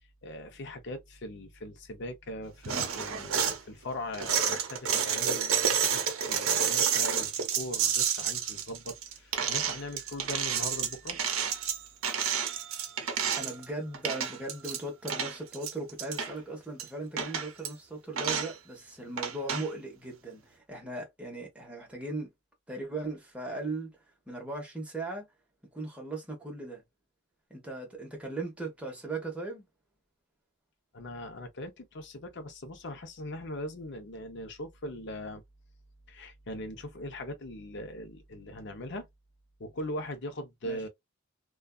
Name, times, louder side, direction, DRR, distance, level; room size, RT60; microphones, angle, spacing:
voice 1, 0.2-6.0 6.3-11.2 30.9-35.4 36.1-39.1 39.6-40.9, left 1 dB, 55° left, 0.6 m, -40 dB
sound 1, 2.6-3.6 4.1-13.6 13.9-14.8 15.1-16.3 16.8-16.9 17.2-17.7 18.2-18.5 19.2-19.7, right 7 dB, 80° right, 0.6 m, -30 dB
voice 2, 13.3-22.3 22.7-24.0 24.3-25.3 25.7-26.8 27.5-29.6 40.6-40.8, right 2 dB, 5° right, 0.9 m, -38 dB
2.5 x 2.3 x 2.2 m
head